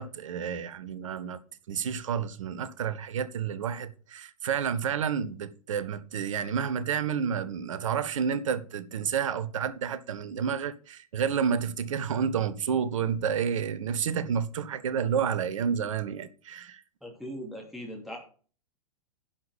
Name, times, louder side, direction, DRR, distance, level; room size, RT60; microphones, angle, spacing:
voice 1, 0.0-1.4 1.7-16.8, right 7 dB, 60° right, 1.0 m, -30 dB
voice 2, 17.0-18.2, equal, ahead, 2.7 m, -39 dB
11.0 x 5.7 x 5.2 m
figure-of-eight pair, 100°, 19 cm